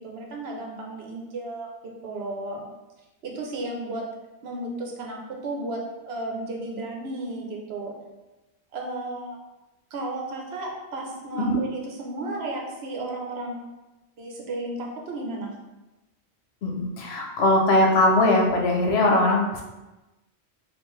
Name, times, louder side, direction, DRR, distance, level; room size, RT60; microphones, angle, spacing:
voice 1, 0.0-1.7 2.0-2.6 3.2-4.1 4.4-7.9 8.7-9.4 9.9-13.6 14.2-15.5, right 2 dB, 75° right, 0 dB, 1.0 m, -33 dB
voice 2, 16.6-19.6, left 1 dB, 75° left, 1 dB, 0.9 m, -20 dB
4.5 x 2.5 x 3.1 m, 1.1 s
omnidirectional pair, 1.1 m